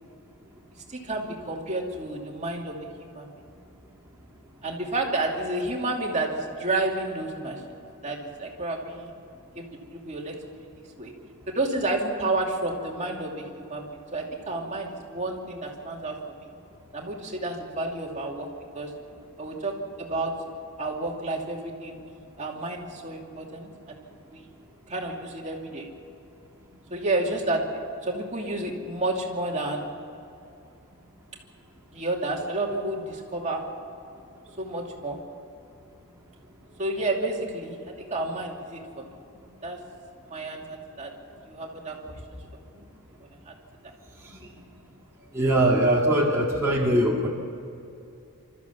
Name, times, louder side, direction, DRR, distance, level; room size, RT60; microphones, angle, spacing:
voice 1, 0.9-3.3 4.6-7.6 8.0-9.1 9.5-10.7 11.0-11.1 11.5-13.8 14.1-16.5 16.9-18.5 18.7-18.9 19.4-19.7 20.0-20.3 20.8-24.5 24.9-25.9 26.9-29.9 31.9-33.6 34.6-35.2 36.8-39.1 39.6-39.8 40.3-41.1 41.5-42.2 42.5-42.7 43.4-43.5, right 2 dB, 30° right, 0 dB, 2.7 m, -30 dB
voice 2, 45.3-47.3, right 1 dB, 15° right, -5 dB, 2.3 m, -21 dB
28.5 x 14.0 x 7.1 m, 2.7 s
head